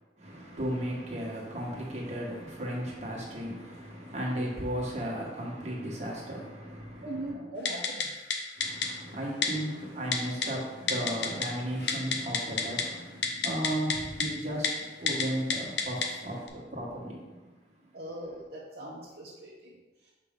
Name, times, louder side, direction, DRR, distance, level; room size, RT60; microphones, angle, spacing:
voice 1, 0.2-7.3 8.6-17.4, equal, 40° right, 1.6 m, -35 dB
voice 2, 7.0-8.1 17.9-20.1, right 1 dB, 55° right, 0.9 m, -40 dB
Typing, 7.7-8.1 8.3-8.4 8.6-8.9 9.4-9.5 10.1-10.5 10.9-11.5 11.8-12.8 13.2-14.0 14.2-14.3 14.6-14.7 15.1-15.2 15.5-16.1 16.5-16.6, left 6 dB, 70° left, 0.8 m, -27 dB
6.4 x 5.3 x 3.7 m
head